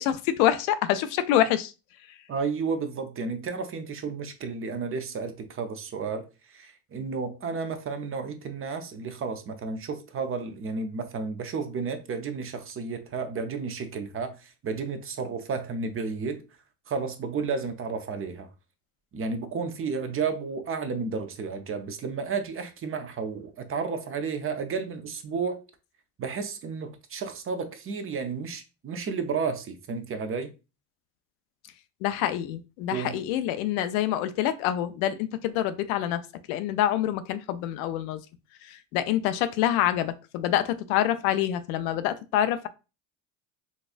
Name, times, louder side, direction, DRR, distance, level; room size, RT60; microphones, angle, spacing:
voice 1, 0.0-1.7 32.0-36.2 36.5-38.2 38.6-42.7, left 11 dB, 90° left, 0.5 m, -26 dB
voice 2, 2.3-16.4 16.9-18.5 19.1-25.6 26.2-30.5 32.9-33.2, right 5 dB, 30° right, 0.6 m, -32 dB
4.0 x 2.3 x 2.5 m
supercardioid pair, 100°, 42 cm